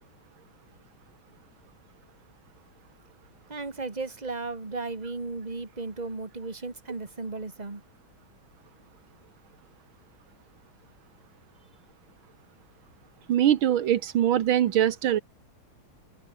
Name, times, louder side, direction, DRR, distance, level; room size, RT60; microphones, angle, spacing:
voice 1, 3.5-7.8, right 3 dB, 20° right, 2.6 m, -35 dB
voice 2, 13.3-15.2, right 11 dB, 80° right, 1.9 m, -22 dB
open air
omnidirectional pair, 2.2 m